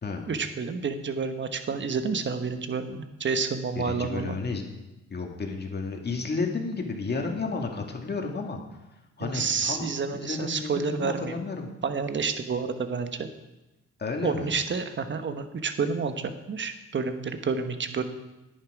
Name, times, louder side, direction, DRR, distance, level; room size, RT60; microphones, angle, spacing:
voice 1, 0.3-4.4 9.2-11.4 11.8-13.3 14.2-18.0, right 5 dB, 40° right, 8 dB, 1.2 m, -29 dB
voice 2, 3.8-4.6 5.1-8.6 9.2-11.7 14.0-14.5, left 4 dB, 35° left, 2 dB, 2.0 m, -32 dB
10.0 x 10.0 x 4.9 m, 1.0 s
cardioid pair, 90°, 30 cm